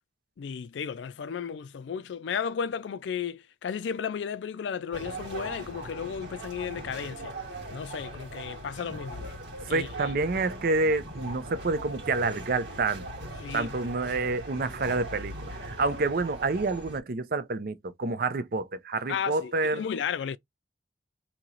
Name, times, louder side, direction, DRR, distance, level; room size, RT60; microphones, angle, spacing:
voice 1, 0.4-7.4 7.7-9.3 9.7-10.1 13.4-14.1 19.1-20.4, left 7 dB, 80° left, 0.4 m, -34 dB
sound 1, 4.9-17.0, right 1 dB, 90° right, 1.6 m, -40 dB
voice 2, 9.7-13.3 13.5-19.8, right 3 dB, 55° right, 0.6 m, -28 dB
3.0 x 2.8 x 3.9 m
head